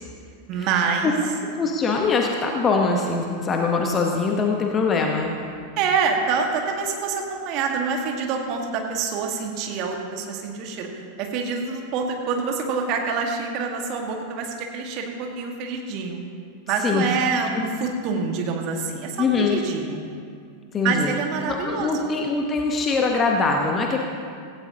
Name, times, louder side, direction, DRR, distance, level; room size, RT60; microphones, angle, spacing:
voice 1, 0.5-1.1 5.8-10.9 11.2-16.2 16.7-20.1 20.8-22.1, right 5 dB, 40° right, 2 dB, 1.8 m, -26 dB
voice 2, 1.6-5.3 16.8-17.0 19.2-19.6 20.7-21.1 21.5-24.0, left 4 dB, 25° left, 1 dB, 1.2 m, -22 dB
16.5 x 16.0 x 3.0 m, 2.2 s
figure-of-eight pair, 90°, 0 cm